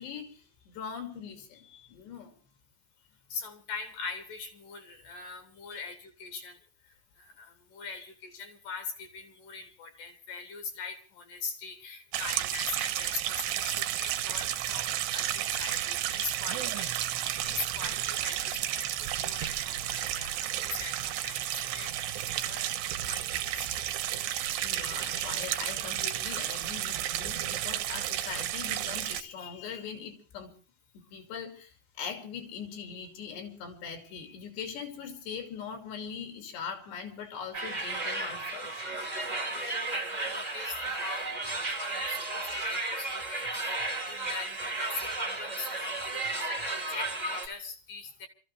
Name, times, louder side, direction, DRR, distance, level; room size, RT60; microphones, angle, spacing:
voice 1, 0.0-2.3 5.6-5.9 7.8-8.1 13.6-13.7 24.2-30.5 31.1-39.0, left 6 dB, 80° left, 4 dB, 4.8 m, -41 dB
voice 2, 3.3-6.6 6.9-17.1 17.4-23.7 39.6-48.3, left 5 dB, 60° left, 7 dB, 2.7 m, -42 dB
sound 1, 12.1-29.2, right 12 dB, 80° right, 3.0 m, -32 dB
sound 2, 37.5-47.5, right 2 dB, 60° right, 0.4 m, -34 dB
27.5 x 14.0 x 3.2 m, 0.37 s
omnidirectional pair, 4.9 m